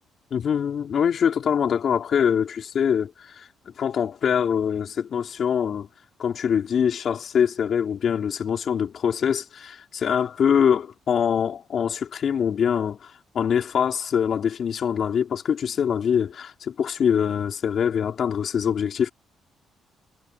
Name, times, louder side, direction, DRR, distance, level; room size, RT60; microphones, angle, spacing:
voice 1, 0.3-3.5 3.8-5.9 6.2-19.1, left 8 dB, 60° left, 4.1 m, -24 dB
cardioid pair, 90°, 0 cm